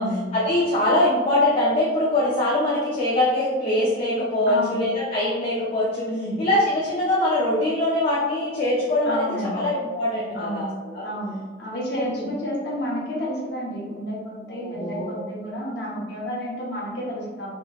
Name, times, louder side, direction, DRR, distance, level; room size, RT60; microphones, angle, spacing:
voice 1, 0.3-6.1 6.4-11.1 12.0-12.3 14.5-15.2, left 1 dB, 35° left, -5 dB, 0.5 m, -23 dB
voice 2, 4.5-4.8 6.1-6.4 9.0-9.6 10.3-10.7 11.0-17.5, equal, 65° left, -4 dB, 0.9 m, -30 dB
3.0 x 2.9 x 2.3 m, 1.4 s
head